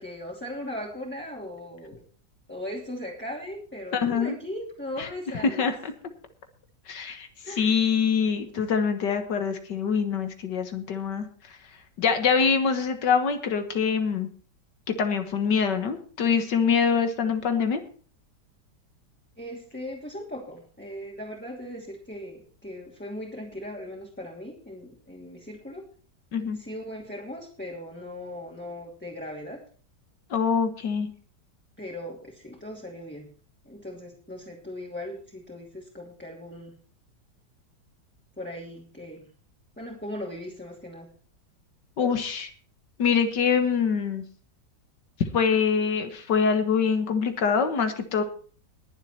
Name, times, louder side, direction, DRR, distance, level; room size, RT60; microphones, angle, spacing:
voice 1, 0.0-2.0 2.5-5.6 7.4-7.8 19.4-25.8 26.5-29.6 31.8-33.3 33.6-36.7 38.4-39.3 39.8-41.1, left 1 dB, 5° left, -2 dB, 2.7 m, -38 dB
voice 2, 3.9-4.4 5.0-5.1 5.4-5.9 6.9-7.3 7.6-11.3 12.0-14.3 14.9-17.8 26.3-26.6 30.3-31.1 42.0-42.5 43.0-44.2 45.3-48.2, left 6 dB, 75° left, 8 dB, 2.0 m, -24 dB
20.5 x 7.6 x 4.3 m, 0.42 s
omnidirectional pair, 1.9 m